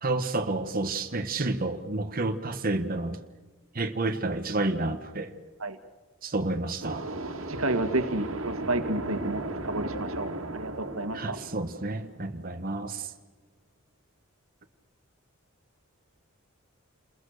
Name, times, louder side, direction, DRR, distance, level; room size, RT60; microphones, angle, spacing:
voice 1, 0.0-3.2 3.7-5.3 6.2-7.1 11.1-13.1, right 2 dB, 45° right, 6 dB, 1.4 m, -30 dB
sound 1, 6.8-12.5, right 2 dB, 70° right, 2.3 m, -36 dB
voice 2, 7.5-11.4, right 2 dB, 90° right, 8 dB, 2.0 m, -31 dB
29.0 x 21.5 x 6.6 m, 1.3 s
head